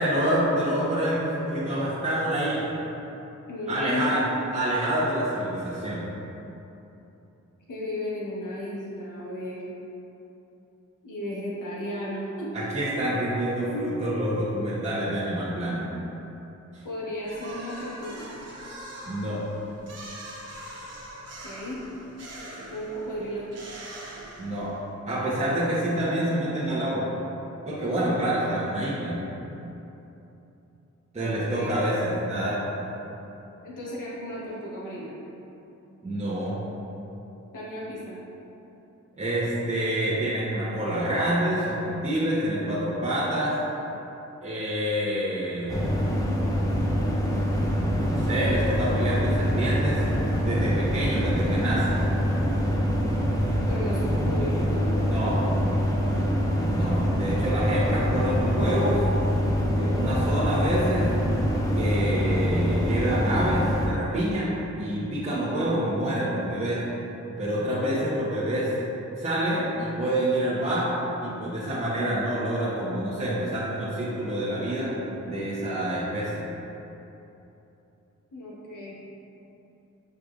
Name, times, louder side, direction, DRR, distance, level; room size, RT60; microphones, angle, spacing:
voice 1, 0.0-2.7 3.7-4.2 4.5-6.1 12.5-15.9 16.7-16.8 19.1-19.4 24.4-24.7 25.1-27.1 27.6-29.2 31.1-32.6 36.0-36.6 39.2-43.6 44.4-46.1 48.0-50.0 50.4-52.1 55.0-55.4 56.7-59.0 59.7-61.1 61.7-66.8 67.4-68.7 69.2-70.9 71.2-74.9 75.2-76.5, right 1 dB, 20° right, -12 dB, 1.0 m, -27 dB
voice 2, 3.5-4.1 7.7-9.6 11.0-12.5 13.7-13.9 16.8-18.2 21.4-21.8 22.7-23.5 31.2-31.7 33.6-35.1 37.5-38.2 53.7-55.0 78.3-79.0, left 1 dB, 90° left, -7 dB, 1.1 m, -34 dB
sound 1, 17.2-24.9, right 1 dB, 55° right, 0.8 m, -42 dB
sound 2, 45.7-63.9, equal, 10° left, 0.6 m, -25 dB
6.4 x 3.4 x 2.4 m, 3.0 s
cardioid pair, 70°, 31 cm